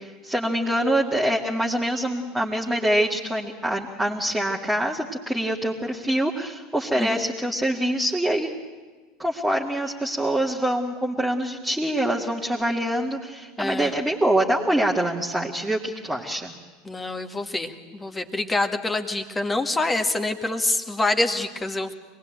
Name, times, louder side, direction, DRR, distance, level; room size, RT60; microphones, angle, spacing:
voice 1, 0.0-8.5 9.2-16.5, right 1 dB, 5° right, -3 dB, 2.2 m, -25 dB
voice 2, 13.6-13.9 16.9-21.9, left 2 dB, 15° left, 7 dB, 1.9 m, -26 dB
25.5 x 19.5 x 9.1 m, 1.4 s
figure-of-eight pair, 75°, 0 cm